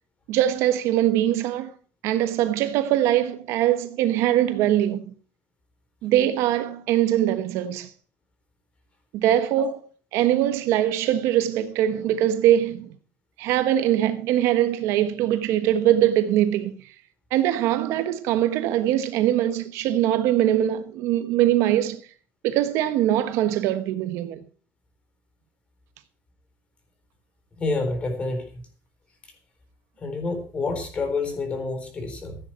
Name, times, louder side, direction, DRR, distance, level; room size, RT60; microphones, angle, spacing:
voice 1, 0.3-1.7 2.0-5.1 6.0-7.9 9.1-9.8 10.1-12.9 13.4-16.7 17.3-22.0 22.4-24.4, right 12 dB, 60° right, 1.3 m, -22 dB
voice 2, 27.6-28.5 30.0-32.4, left 3 dB, 20° left, 3.7 m, -28 dB
15.5 x 9.6 x 4.5 m
cardioid pair, 165°, 5 cm